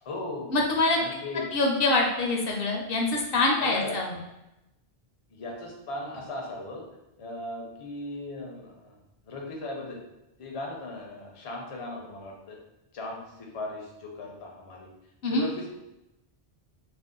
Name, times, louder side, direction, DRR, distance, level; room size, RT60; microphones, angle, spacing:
voice 1, 0.0-0.6 0.9-1.5 3.6-4.0 5.3-6.9 7.2-9.0 9.2-10.0 10.4-12.6 12.9-14.9 15.3-15.7, left 2 dB, 45° left, 0 dB, 0.5 m, -37 dB
voice 2, 0.5-1.0 1.5-4.1 15.2-15.4, left 2 dB, 70° left, 0 dB, 0.8 m, -25 dB
2.6 x 2.0 x 3.7 m, 0.92 s
omnidirectional pair, 1.0 m